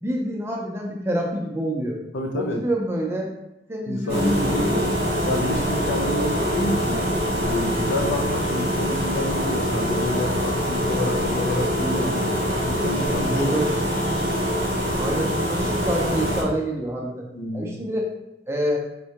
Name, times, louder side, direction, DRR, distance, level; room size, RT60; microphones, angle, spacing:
voice 1, 0.0-2.0 2.3-3.3 3.7-4.8 6.0-6.1 13.2-13.7 15.0-17.2 17.5-18.1 18.5-18.8, right 1 dB, 15° right, -1 dB, 0.4 m, -27 dB
voice 2, 2.1-2.7 3.9-4.9 5.2-7.0 7.4-12.3 12.7-13.6 17.3-17.8, left 1 dB, 80° left, 3 dB, 0.4 m, -28 dB
sound 1, 4.1-16.4, equal, 60° right, 0.8 m, -24 dB
3.6 x 2.1 x 2.8 m, 0.86 s
head